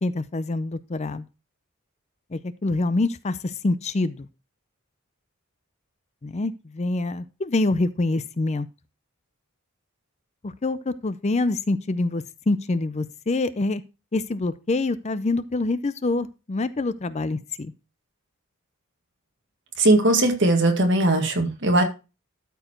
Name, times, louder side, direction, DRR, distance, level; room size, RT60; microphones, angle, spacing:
voice 1, 0.0-1.2 2.3-4.3 6.2-8.7 10.4-13.8 14.1-17.7, left 2 dB, 30° left, 14 dB, 0.5 m, -26 dB
voice 2, 19.8-21.8, right 2 dB, 55° right, 4 dB, 1.9 m, -19 dB
12.5 x 4.7 x 4.4 m, 0.29 s
head